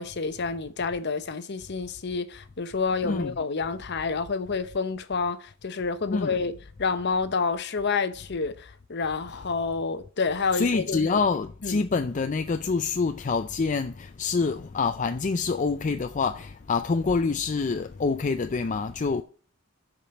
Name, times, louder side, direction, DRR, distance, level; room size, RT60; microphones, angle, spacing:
voice 1, 0.0-6.5 6.8-11.2 11.6-11.8, left 4 dB, 55° left, 0.9 m, -29 dB
voice 2, 10.5-19.2, left 4 dB, 40° left, 0.4 m, -26 dB
7.2 x 5.1 x 7.0 m
head